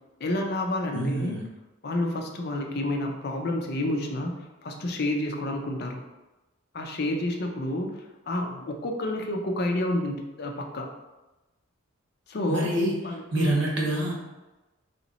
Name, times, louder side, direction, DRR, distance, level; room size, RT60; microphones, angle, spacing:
voice 1, 0.2-1.4 1.8-6.0 6.7-10.9 12.3-12.7 13.0-13.7, left 1 dB, 55° left, 3 dB, 0.5 m, -29 dB
voice 2, 0.9-1.4 12.5-14.2, right 1 dB, 70° right, -2 dB, 1.1 m, -27 dB
3.2 x 3.0 x 4.0 m, 1.1 s
head